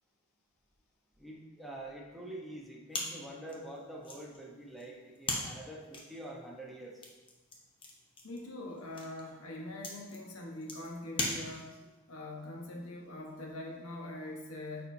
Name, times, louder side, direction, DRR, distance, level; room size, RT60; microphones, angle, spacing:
voice 1, 1.2-7.1, right 1 dB, ahead, -3 dB, 1.0 m, -46 dB
sound 1, 2.9-11.9, left 2 dB, 25° left, 0.9 m, -41 dB
voice 2, 8.2-11.8 12.1-14.9, left 1 dB, 85° left, -1 dB, 1.2 m, -43 dB
9.0 x 4.2 x 2.7 m, 1.2 s
head